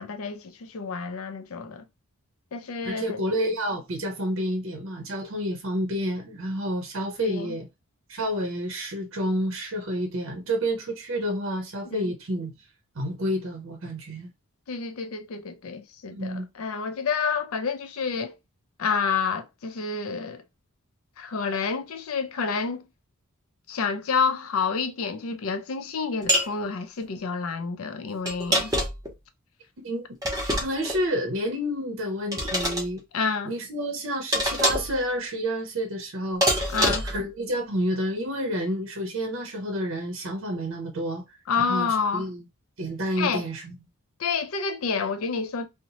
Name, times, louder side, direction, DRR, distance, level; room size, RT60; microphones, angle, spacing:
voice 1, 0.0-1.8 2.5-3.2 7.2-7.6 11.9-12.1 14.7-18.3 18.8-20.4 21.2-22.8 23.7-28.7 33.1-33.5 36.7-37.1 41.5-42.3 43.2-43.4 44.2-45.7, left 5 dB, 70° left, 0.5 m, -29 dB
voice 2, 2.8-7.7 8.1-12.5 13.0-14.3 16.1-16.5 29.8-30.1 30.6-33.0 33.4-36.7 37.0-42.4 42.8-43.7, equal, 60° right, 0.6 m, -29 dB
sound 1, 26.3-26.5 28.3-29.1 30.2-31.0 32.3-32.9 34.3-35.0 36.4-37.2, equal, 15° right, 0.7 m, -25 dB
2.8 x 2.0 x 2.8 m
head